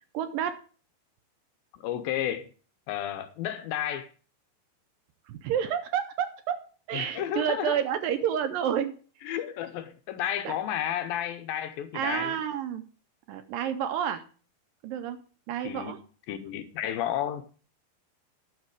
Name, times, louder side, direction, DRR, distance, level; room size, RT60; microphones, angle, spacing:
voice 1, 0.1-0.6 5.3-6.6 6.9-8.9 10.5-10.6 11.9-12.8 13.3-14.2 14.8-15.2 15.5-16.0, right 9 dB, 80° right, 2.1 m, -29 dB
voice 2, 1.7-2.5 2.9-4.1 6.9-7.8 9.2-12.4 15.6-15.9 16.3-17.4, left 10 dB, 80° left, 2.3 m, -32 dB
11.0 x 6.6 x 4.7 m
omnidirectional pair, 4.5 m